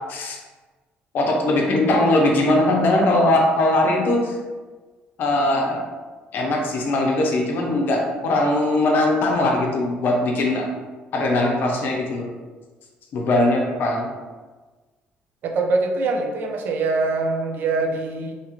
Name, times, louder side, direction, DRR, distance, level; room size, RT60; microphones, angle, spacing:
voice 1, 1.1-4.3 5.2-5.8 6.3-10.7 11.1-12.3 13.1-14.1, left 1 dB, 60° left, 0 dB, 0.6 m, -20 dB
voice 2, 15.4-18.4, right 3 dB, 60° right, 4 dB, 0.4 m, -23 dB
2.8 x 2.3 x 2.9 m, 1.3 s
cardioid pair, 115°, 4 cm